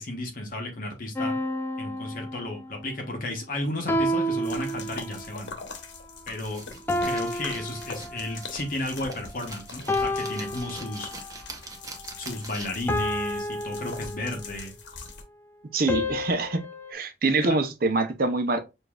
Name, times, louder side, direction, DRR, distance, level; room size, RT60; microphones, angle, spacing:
voice 1, 0.0-1.4 1.8-5.5 6.3-6.6 7.0-11.2 12.2-14.7 17.4-17.6, left 1 dB, 50° left, 0.9 m, -33 dB
sound 1, 1.2-2.8 3.9-5.4 6.9-8.6 9.9-11.4 12.9-14.6 15.9-16.9, left 1 dB, 10° left, 0.4 m, -30 dB
sound 2, 4.4-15.2, left 4 dB, 90° left, 0.9 m, -43 dB
sound 3, 6.4-12.9, right 3 dB, 20° right, 0.8 m, -44 dB
voice 2, 15.7-16.6 16.9-18.6, right 3 dB, 55° right, 0.6 m, -25 dB
6.6 x 2.6 x 2.3 m
head